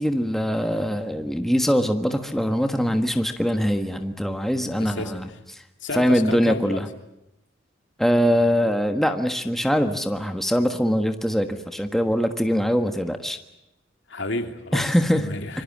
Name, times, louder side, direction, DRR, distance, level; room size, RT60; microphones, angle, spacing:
voice 1, 0.0-5.3 5.5-5.6 5.9-6.9 8.0-13.4 14.7-15.3, equal, ahead, 6 dB, 1.4 m, -22 dB
voice 2, 4.8-5.4 5.8-6.8 11.4-11.6 14.1-15.6, left 2 dB, 65° left, 6 dB, 2.9 m, -32 dB
26.5 x 23.5 x 7.5 m, 0.87 s
head